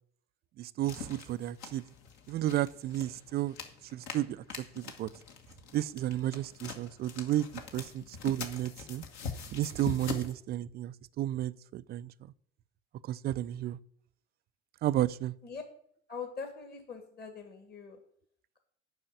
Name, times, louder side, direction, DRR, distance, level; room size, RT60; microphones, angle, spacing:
voice 1, 0.6-1.8 2.3-3.6 3.9-5.1 5.7-7.5 7.7-9.0 9.5-12.1 13.0-13.8 14.8-15.3, right 13 dB, 30° right, 17 dB, 0.4 m, -32 dB
sound 1, 0.8-10.3, left 6 dB, 50° left, 1.6 m, -44 dB
voice 2, 16.1-18.0, left 5 dB, 25° left, 5 dB, 1.8 m, -42 dB
9.1 x 5.6 x 8.0 m, 0.64 s
figure-of-eight pair, 65°, 36 cm